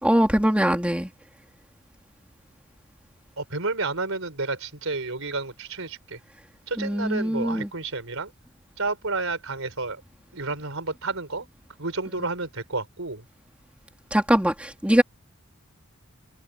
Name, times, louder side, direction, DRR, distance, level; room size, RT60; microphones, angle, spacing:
voice 1, 0.0-1.1 6.8-7.7 12.1-12.2 14.1-15.0, equal, 5° right, 2.8 m, -22 dB
voice 2, 3.4-6.2 6.7-8.3 8.8-10.0 10.3-11.5 11.8-13.2, right 3 dB, 70° right, 5.3 m, -30 dB
head